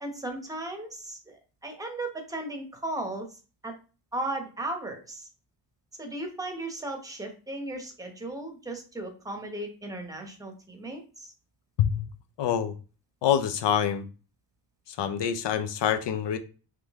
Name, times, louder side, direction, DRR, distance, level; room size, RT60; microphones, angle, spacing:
voice 1, 0.0-3.3 3.6-3.7 4.1-5.3 6.0-11.3, right 2 dB, 10° right, 3 dB, 0.9 m, -36 dB
voice 2, 12.4-12.7 13.2-14.1 14.9-16.4, left 9 dB, 70° left, 9 dB, 0.7 m, -26 dB
3.7 x 3.2 x 3.5 m, 0.35 s
wide cardioid pair, 145°, 45 cm